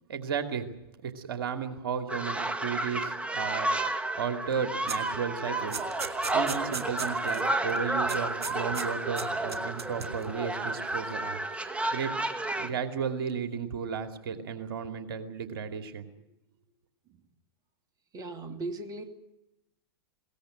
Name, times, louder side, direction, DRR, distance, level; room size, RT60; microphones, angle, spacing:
voice 1, 0.1-0.7 1.0-3.7 4.1-5.8 6.3-11.4 11.9-12.1 12.5-16.1, right 6 dB, 60° right, 7 dB, 2.6 m, -34 dB
sound 1, 2.1-12.7, right 2 dB, 10° right, 1.7 m, -31 dB
sound 2, 4.9-5.1 5.4-7.4 7.7-7.8 8.1-8.9 9.2-10.2, right 6 dB, 80° right, 2.6 m, -37 dB
voice 2, 18.1-19.0, right 2 dB, 30° right, 5 dB, 2.7 m, -37 dB
22.0 x 18.0 x 9.0 m, 0.89 s
hypercardioid pair, 105°, 13 cm